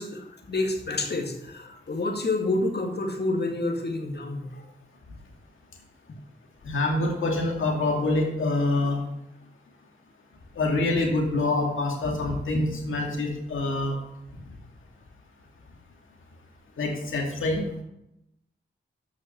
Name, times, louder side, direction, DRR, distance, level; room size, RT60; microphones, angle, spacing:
voice 1, 0.0-4.6, left 2 dB, 55° left, 3 dB, 2.1 m, -29 dB
voice 2, 6.6-9.0 10.6-14.0 16.8-17.6, left 2 dB, 80° left, 1 dB, 2.4 m, -26 dB
8.3 x 6.2 x 7.3 m, 0.83 s
cardioid pair, 45°, 20 cm